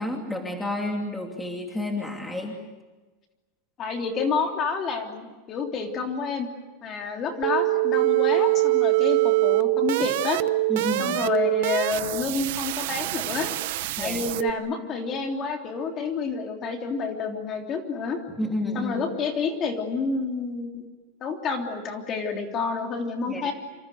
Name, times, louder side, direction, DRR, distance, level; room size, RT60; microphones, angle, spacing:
voice 1, 0.0-2.6 10.7-11.2 14.0-14.2 18.4-19.0 23.3-23.5, left 1 dB, 5° left, 2 dB, 2.8 m, -30 dB
voice 2, 3.8-6.5 6.8-10.4 11.0-13.5 14.0-18.2 18.7-20.9 21.2-23.5, left 4 dB, 25° left, 3 dB, 3.3 m, -29 dB
sound 1, 7.4-14.5, right 19 dB, 60° right, 0.9 m, -24 dB
26.5 x 26.5 x 8.0 m, 1.2 s
supercardioid pair, 165°, 0 cm